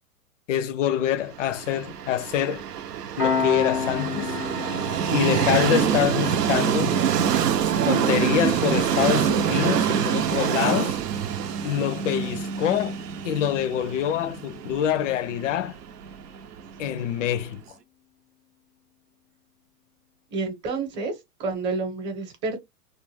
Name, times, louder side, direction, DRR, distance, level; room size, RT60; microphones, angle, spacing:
voice 1, 0.5-2.6 3.2-4.4 5.1-7.0 7.9-11.0 11.6-13.0 13.2-15.8 16.8-17.6, left 10 dB, 55° left, 0.5 m, -25 dB
Train, 1.5-17.4, right 8 dB, 75° right, 0.7 m, -25 dB
Piano, 3.2-14.3, left 6 dB, 5° right, 0.3 m, -35 dB
voice 2, 20.3-22.6, right 3 dB, 25° right, 0.9 m, -29 dB
2.4 x 2.2 x 3.0 m
hypercardioid pair, 135°, 47 cm